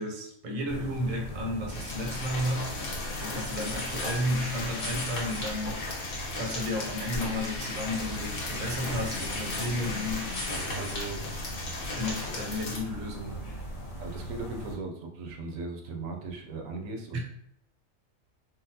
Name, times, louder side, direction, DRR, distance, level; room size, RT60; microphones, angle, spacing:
voice 1, 0.0-2.7 3.2-6.0 6.3-11.4 11.8-13.5 17.1-17.2, equal, 45° right, 0 dB, 0.6 m, -33 dB
sound 1, 0.7-14.8, equal, 50° left, 0.4 m, -40 dB
sound 2, 1.7-12.8, left 2 dB, 90° left, 1.4 m, -36 dB
sound 3, 4.1-11.2, left 3 dB, 70° left, 1.0 m, -44 dB
voice 2, 14.0-17.2, right 3 dB, 80° right, 2 dB, 1.0 m, -38 dB
3.9 x 2.0 x 2.7 m, 0.72 s
omnidirectional pair, 1.4 m